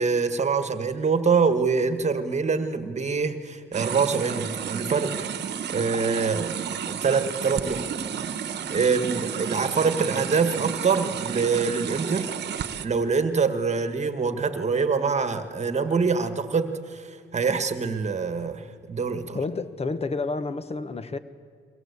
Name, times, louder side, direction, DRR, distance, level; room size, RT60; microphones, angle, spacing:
voice 1, 0.0-5.3 5.7-6.6 6.9-7.9 8.7-12.3 12.8-19.4, right 5 dB, 35° right, 1.6 m, -25 dB
sound 1, 3.7-12.9, right 8 dB, 60° right, 1.2 m, -32 dB
voice 2, 19.3-21.2, left 3 dB, 30° left, 1.2 m, -29 dB
23.5 x 17.5 x 8.3 m
cardioid pair, 90°, 20 cm